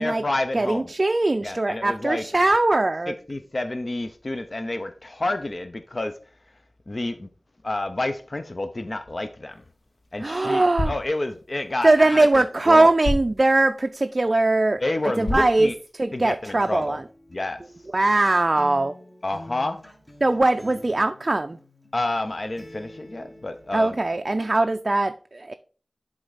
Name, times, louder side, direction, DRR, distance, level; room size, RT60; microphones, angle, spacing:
voice 1, 0.0-0.9 1.4-2.2 3.1-6.1 6.9-7.3 7.6-9.6 10.1-12.9 14.8-15.7 16.1-17.0 17.3-17.6 19.2-19.8 21.9-24.0, left 2 dB, 50° left, 0.6 m, -29 dB
voice 2, 0.5-3.2 10.2-10.9 11.8-14.8 15.2-17.0 17.9-19.0 20.2-21.6 23.7-25.5, right 2 dB, 45° right, 0.3 m, -21 dB
sound 1, 9.5-16.4, left 1 dB, 85° left, 1.7 m, -35 dB
Acoustic guitar, 16.6-24.6, left 1 dB, 20° left, 1.5 m, -47 dB
7.8 x 3.8 x 4.0 m
wide cardioid pair, 50°, 0 cm